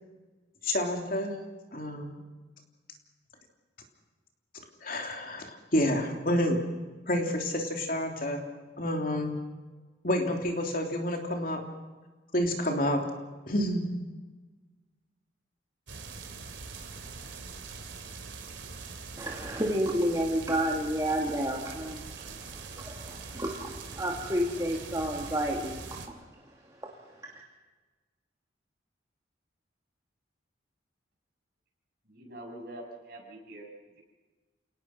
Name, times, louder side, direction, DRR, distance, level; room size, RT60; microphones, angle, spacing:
voice 1, 0.6-1.3 1.7-2.2 4.8-6.6 7.1-8.4 8.8-9.4 10.0-11.6 12.3-13.0 13.5-13.9, left 1 dB, 45° left, 2 dB, 3.2 m, -29 dB
sound 1, 15.9-26.1, right 4 dB, 70° right, 2.8 m, -43 dB
voice 2, 19.2-26.2 26.8-26.9, equal, 15° right, -1 dB, 2.3 m, -31 dB
voice 3, 32.0-33.7, right 1 dB, 50° right, 0 dB, 7.4 m, -44 dB
28.5 x 19.0 x 6.0 m, 1.3 s
head